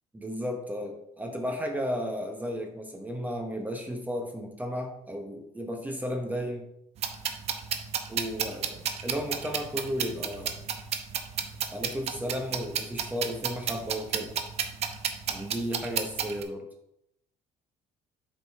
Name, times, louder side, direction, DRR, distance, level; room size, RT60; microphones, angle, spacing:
voice 1, 0.1-6.7 8.1-10.6 11.7-14.3 15.3-16.7, equal, 10° right, 3 dB, 0.9 m, -34 dB
sound 1, 7.0-16.4, right 8 dB, 50° right, 0.8 m, -32 dB
7.9 x 5.1 x 3.5 m, 0.80 s
cardioid pair, 115°, 14 cm